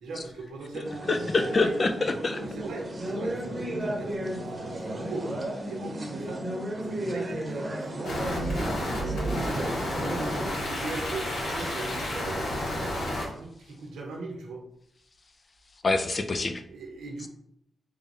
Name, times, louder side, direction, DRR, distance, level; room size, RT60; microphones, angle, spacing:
voice 1, 0.0-1.8 2.3-5.3 5.7-6.4 6.8-13.0 13.3-14.6 16.7-17.3, right 3 dB, 80° right, 1 dB, 0.8 m, -39 dB
sound 1, 0.8-10.5, right 1 dB, 35° right, 0.8 m, -34 dB
voice 2, 1.1-2.4 15.8-16.6, left 3 dB, 45° left, 8 dB, 0.5 m, -25 dB
sound 2, 8.0-13.3, equal, 70° left, 1.2 m, -31 dB
3.3 x 2.2 x 4.2 m, 0.72 s
supercardioid pair, 45°, 0 cm